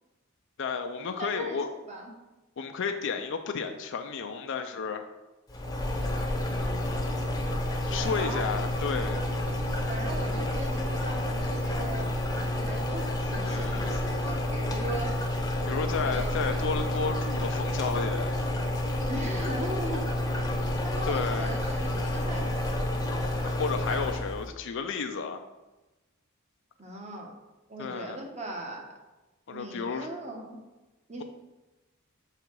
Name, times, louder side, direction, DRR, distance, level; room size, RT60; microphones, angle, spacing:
voice 1, 0.6-1.7 2.6-5.0 7.9-9.2 13.4-14.0 15.7-18.4 20.6-20.7 21.1-21.5 23.4-25.4 27.8-28.2 29.5-30.1, left 5 dB, 60° left, 6 dB, 0.5 m, -32 dB
voice 2, 1.2-1.6 1.9-2.1 7.8-8.4 9.9-15.2 16.0-16.3 19.1-20.1 20.8-23.2 26.8-27.4 27.7-29.0 29.5-30.6 31.1-31.2, right 1 dB, 35° right, 1 dB, 1.2 m, -38 dB
sound 1, 5.5-24.4, left 1 dB, 20° left, 0.8 m, -29 dB
6.7 x 4.8 x 4.6 m, 1.1 s
head